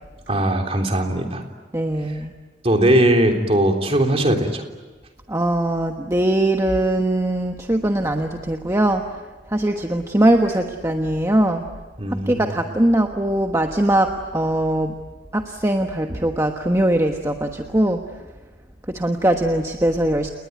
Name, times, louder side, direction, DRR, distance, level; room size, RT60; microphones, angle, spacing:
voice 1, 0.3-1.4 2.1-2.2 2.6-4.6 12.0-12.6, right 1 dB, 35° right, 3 dB, 3.4 m, -19 dB
voice 2, 1.7-2.3 5.3-9.0 9.5-11.6 12.1-14.9 15.3-18.0 18.9-20.3, right 1 dB, 15° right, 4 dB, 1.3 m, -21 dB
30.0 x 20.5 x 9.3 m, 1.3 s
head